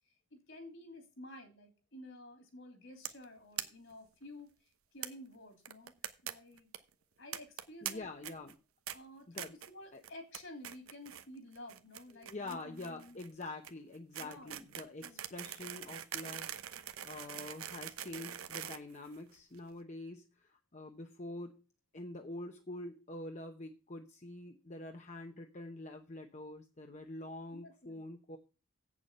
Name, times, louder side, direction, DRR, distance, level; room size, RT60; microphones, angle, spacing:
voice 1, 0.3-4.5 4.9-5.9 6.2-6.7 7.2-8.1 8.9-13.2 14.2-14.7 15.0-15.3 27.5-28.0, left 1 dB, 60° left, 6 dB, 2.9 m, -52 dB
sound 1, 3.0-3.2 3.6-3.7 3.9-4.0 4.2-4.3 5.0-5.1 5.6-6.3 6.6-6.8 7.3-7.9 8.2-8.5 8.9-9.0 9.4-9.7 10.0-10.4 10.6-11.2 11.5-19.6, right 11 dB, 85° right, 0.9 m, -43 dB
voice 2, 7.8-8.6 9.3-9.5 9.9-10.0 12.1-21.6 21.9-28.4, left 2 dB, 35° left, 4 dB, 0.9 m, -46 dB
8.2 x 7.1 x 6.7 m, 0.33 s
head